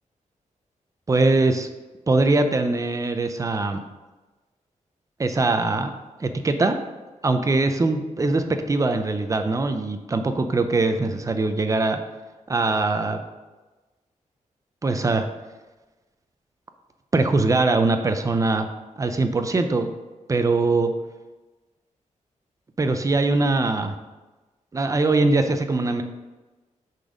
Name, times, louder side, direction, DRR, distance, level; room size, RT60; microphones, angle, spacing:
voice 1, 1.1-1.7 2.1-3.8 5.2-5.9 6.2-6.8 7.2-12.0 12.5-13.2 14.8-15.3 17.1-18.7 19.0-19.9 20.3-20.9 22.8-23.9 24.7-26.0, right 3 dB, 25° right, 7 dB, 0.5 m, -22 dB
6.5 x 4.1 x 5.0 m, 1.2 s
wide cardioid pair, 150°, 13 cm